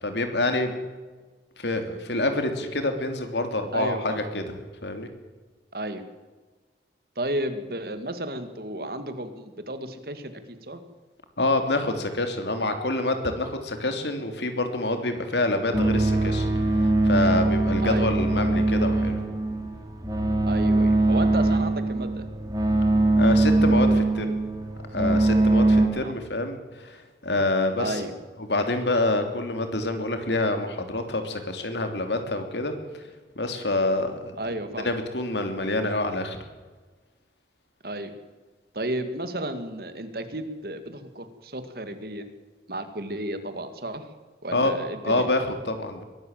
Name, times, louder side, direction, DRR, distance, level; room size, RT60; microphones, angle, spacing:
voice 1, 0.0-0.7 1.6-4.4 4.8-5.1 11.4-16.5 16.8-19.2 23.2-24.3 24.9-28.1 28.4-32.7 33.3-34.3 34.8-36.4 44.5-44.7 45.0-46.0, left 2 dB, 80° left, 7 dB, 3.1 m, -27 dB
voice 2, 3.7-4.2 5.7-6.0 7.2-10.3 10.7-10.8 17.8-18.1 20.5-22.2 25.9-26.1 27.8-28.1 34.4-34.9 37.8-38.1 38.7-42.2 42.7-44.0 44.4-45.3, right 1 dB, 55° right, 9 dB, 2.1 m, -32 dB
sound 1, 15.7-25.9, right 2 dB, 20° right, 2.9 m, -22 dB
22.0 x 13.0 x 9.1 m, 1.3 s
head